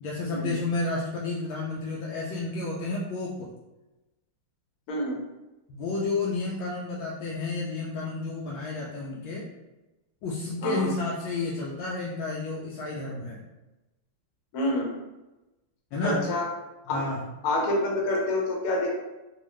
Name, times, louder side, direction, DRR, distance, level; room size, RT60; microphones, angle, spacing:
voice 1, 0.0-3.5 5.7-9.4 10.2-13.4 15.9-16.2 16.9-17.2, left 3 dB, 75° left, -3 dB, 1.2 m, -31 dB
voice 2, 14.5-14.9 16.0-16.4 16.9-17.0 17.4-18.9, left 1 dB, 55° left, -2 dB, 1.1 m, -27 dB
3.5 x 2.5 x 3.1 m, 1.0 s
omnidirectional pair, 2.3 m